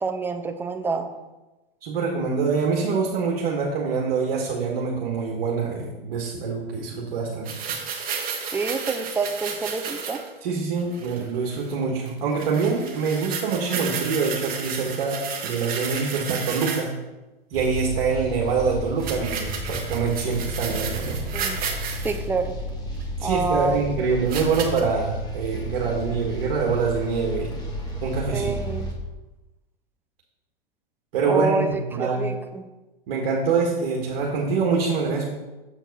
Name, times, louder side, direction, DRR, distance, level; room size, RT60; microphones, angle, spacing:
voice 1, 0.0-1.1 8.5-10.2 21.3-21.6 22.0-22.6 23.2-23.8 28.3-28.9 31.3-32.6, right 4 dB, 5° right, 6 dB, 0.5 m, -27 dB
voice 2, 1.8-7.5 10.4-16.9 17.5-21.2 23.2-27.5 28.0-28.7 31.1-32.3 33.1-35.3, right 5 dB, 55° right, -1 dB, 1.6 m, -25 dB
sound 1, 7.5-10.3 10.8-11.2 11.5-11.7 12.1-12.2 12.4-16.9 19.0-22.2 23.0-23.1 24.3-24.8, right 6 dB, 30° right, 1.4 m, -32 dB
sound 2, 17.5-28.9, equal, 15° left, 1.6 m, -32 dB
7.5 x 4.5 x 5.4 m, 1.1 s
hypercardioid pair, 110°, 29 cm